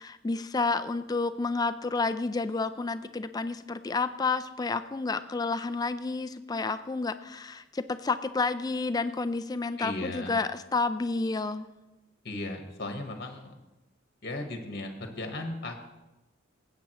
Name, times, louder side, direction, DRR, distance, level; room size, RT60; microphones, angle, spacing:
voice 1, 0.0-11.7, left 3 dB, 20° left, 11 dB, 0.3 m, -30 dB
voice 2, 9.8-10.3 12.2-13.6 14.2-15.7, left 2 dB, 50° left, 4 dB, 1.2 m, -36 dB
17.5 x 8.5 x 3.0 m, 1.0 s
head